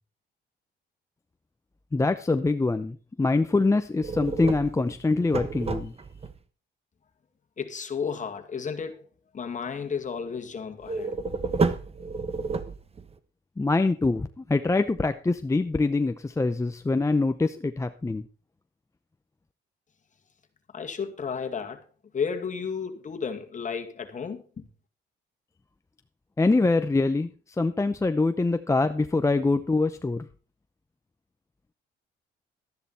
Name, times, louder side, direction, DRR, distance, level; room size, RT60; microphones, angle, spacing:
voice 1, 1.9-5.9 13.6-18.2 26.4-27.3 27.6-30.3, left 3 dB, 15° left, 0.6 m, -24 dB
sound 1, 4.0-6.3 10.8-13.1, right 4 dB, 30° right, 1.1 m, -30 dB
voice 2, 7.6-9.1 9.3-11.1 20.7-21.8 22.1-24.7, left 6 dB, 40° left, 2.1 m, -33 dB
12.5 x 10.5 x 4.3 m
cardioid pair, 90°, 20 cm